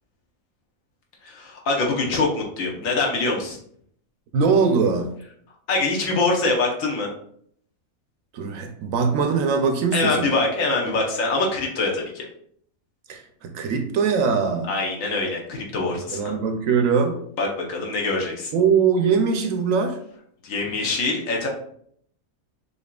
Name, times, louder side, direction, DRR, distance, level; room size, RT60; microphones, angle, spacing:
voice 1, 1.2-3.6 5.7-7.1 9.9-12.2 14.7-16.3 17.4-18.5 20.4-21.5, left 3 dB, 65° left, -1 dB, 1.2 m, -24 dB
voice 2, 4.3-5.1 8.3-10.3 13.1-14.7 16.1-17.2 18.5-20.0, right 5 dB, 70° right, 6 dB, 0.9 m, -21 dB
6.4 x 2.8 x 2.2 m, 0.66 s
omnidirectional pair, 1.5 m